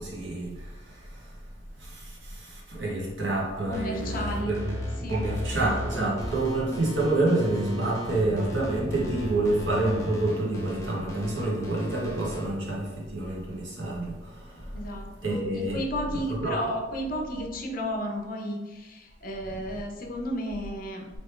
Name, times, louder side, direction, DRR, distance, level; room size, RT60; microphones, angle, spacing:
voice 1, 0.0-1.4 1.8-4.8 5.1-14.8 15.2-15.8 16.1-16.6 19.5-19.6, right 2 dB, 80° right, -4 dB, 1.2 m, -28 dB
voice 2, 3.7-4.6 5.0-5.3 14.7-21.1, equal, 50° left, 2 dB, 0.6 m, -33 dB
sound 1, 3.7-12.4, equal, 15° left, 0.7 m, -36 dB
3.4 x 2.9 x 4.3 m, 1.2 s
head